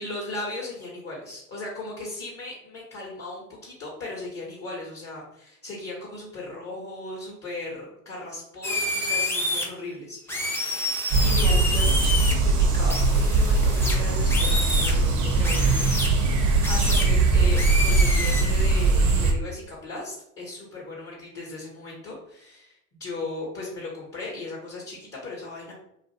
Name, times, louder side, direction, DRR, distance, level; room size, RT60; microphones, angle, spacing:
voice 1, 0.0-10.8 11.2-25.7, left 2 dB, 35° left, -4 dB, 0.9 m, -37 dB
sound 1, 8.6-9.6 10.3-12.3 12.9-15.0 15.4-16.1 16.6-17.0 17.5-18.4, left 1 dB, 5° left, 0.5 m, -28 dB
sound 2, 11.1-19.3, right 3 dB, 45° right, 0.7 m, -21 dB
2.4 x 2.4 x 2.8 m, 0.76 s
hypercardioid pair, 75°, 42 cm